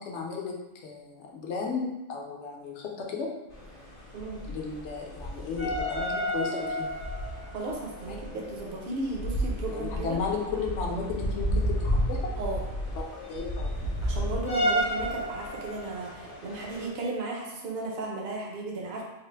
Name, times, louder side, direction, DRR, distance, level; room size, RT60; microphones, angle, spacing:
voice 1, 0.0-3.3 4.5-6.9 8.3-8.4 8.7-8.8 9.7-12.2 12.9-13.9, left 4 dB, 65° left, 0 dB, 0.9 m, -34 dB
sound 1, 3.5-16.9, equal, 40° left, 0.6 m, -32 dB
voice 2, 7.5-10.2 12.4-12.6 14.0-19.0, right 2 dB, 55° right, -1 dB, 0.8 m, -35 dB
3.9 x 2.1 x 3.2 m, 1.0 s
omnidirectional pair, 1.4 m